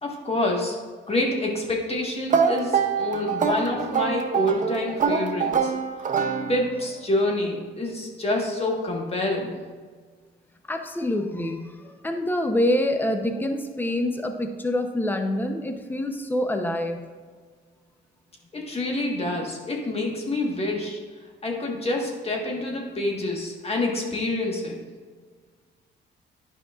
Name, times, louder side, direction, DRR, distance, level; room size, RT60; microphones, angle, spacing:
voice 1, 0.0-0.8 1.1-5.7 6.5-9.6 18.5-21.0 21.4-24.8, left 1 dB, 30° left, -1 dB, 1.4 m, -27 dB
sound 1, 2.3-6.9, right 6 dB, 40° right, 0.6 m, -25 dB
voice 2, 10.7-11.7 12.0-17.0, left 1 dB, 10° left, 5 dB, 0.7 m, -26 dB
10.0 x 5.3 x 2.4 m, 1.5 s
cardioid pair, 90°, 20 cm